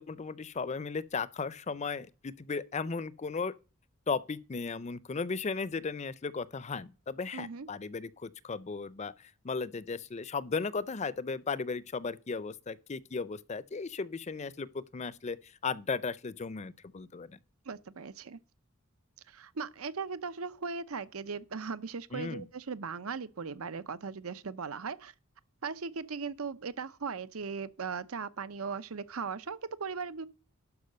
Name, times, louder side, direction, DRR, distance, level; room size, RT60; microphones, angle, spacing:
voice 1, 0.0-3.5 4.1-9.1 9.4-15.4 15.6-17.4 22.1-22.4, left 4 dB, 35° left, 0.5 m, -36 dB
voice 2, 7.3-7.7 17.7-18.4 19.3-25.1 25.6-30.3, right 5 dB, 85° right, 0.7 m, -38 dB
12.0 x 4.9 x 6.5 m
head